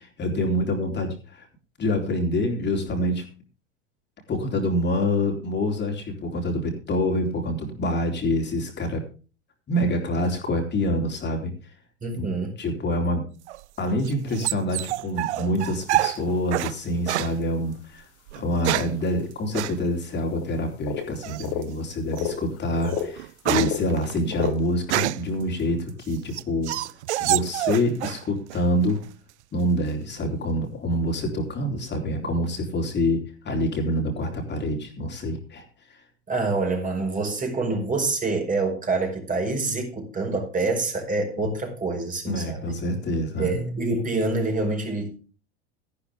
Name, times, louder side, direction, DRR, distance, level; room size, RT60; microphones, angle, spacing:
voice 1, 0.0-1.5 1.8-3.2 4.3-9.0 9.7-11.7 12.1-12.3 12.6-13.3 13.8-18.0 18.4-26.7 27.2-29.0 29.5-35.6 41.4-41.5 42.3-43.7, left 1 dB, 30° left, 3.8 m, -26 dB
voice 2, 12.0-12.5 36.3-42.7 43.3-45.2, right 3 dB, 25° right, 5.1 m, -26 dB
sound 1, 13.5-16.8 17.1-17.4 18.3-19.0 19.5-19.8 21.2-21.6 22.2-22.3 22.7-25.4 25.9-28.2 28.5-29.1, right 16 dB, 75° right, 0.5 m, -27 dB
sound 2, 15.9-16.0 16.2-16.3 16.6-16.7 17.1-17.2 18.5-18.6 19.0-19.1 19.8-19.9 20.1-20.6 20.8-21.7 22.1-23.2 23.5-24.5, left 10 dB, 55° left, 2.9 m, -31 dB
13.5 x 12.0 x 3.5 m
figure-of-eight pair, 75°, 35 cm